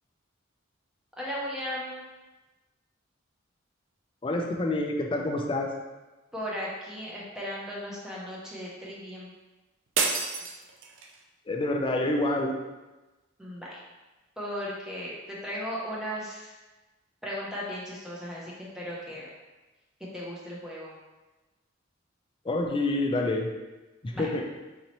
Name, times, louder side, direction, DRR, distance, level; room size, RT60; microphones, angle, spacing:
voice 1, 1.2-2.0 6.3-9.3 13.4-13.8 14.4-16.5 17.2-19.3 20.1-20.9 24.1-24.3, equal, 5° right, -6 dB, 0.8 m, -36 dB
voice 2, 4.2-5.7 11.5-12.6 22.4-23.5 24.0-24.5, left 2 dB, 25° left, 1 dB, 0.4 m, -27 dB
sound 1, 10.0-11.2, right 4 dB, 75° right, 0.4 m, -29 dB
3.9 x 2.9 x 3.0 m, 1.1 s
head